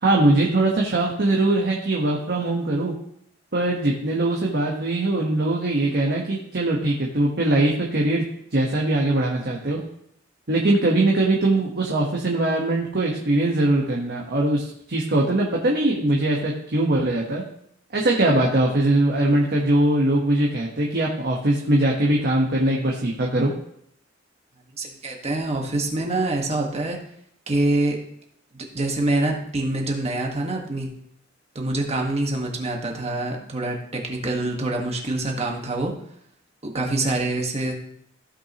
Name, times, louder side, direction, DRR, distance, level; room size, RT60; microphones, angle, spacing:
voice 1, 0.0-2.9 3.5-8.2 8.5-9.8 10.5-17.4 17.9-23.5, right 1 dB, 55° right, -2 dB, 1.2 m, -21 dB
voice 2, 24.8-27.0 27.5-28.0 28.7-30.9 31.5-35.9 36.6-37.7, right 2 dB, 35° right, 0 dB, 1.5 m, -25 dB
15.5 x 5.7 x 3.0 m, 0.71 s
head